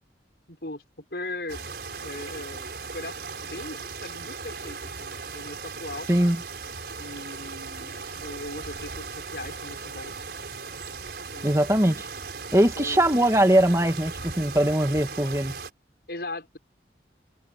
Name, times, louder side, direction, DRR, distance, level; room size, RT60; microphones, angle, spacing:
voice 1, 0.5-0.8 1.1-1.7 2.0-3.2 3.4-6.1 7.0-10.2 11.3-11.6 12.7-13.3 16.1-16.6, left 2 dB, 65° left, 6.7 m, -39 dB
sound 1, 1.5-15.7, right 4 dB, 65° right, 4.7 m, -38 dB
voice 2, 6.1-6.4 11.4-12.1 12.5-15.5, right 1 dB, 15° right, 2.0 m, -21 dB
head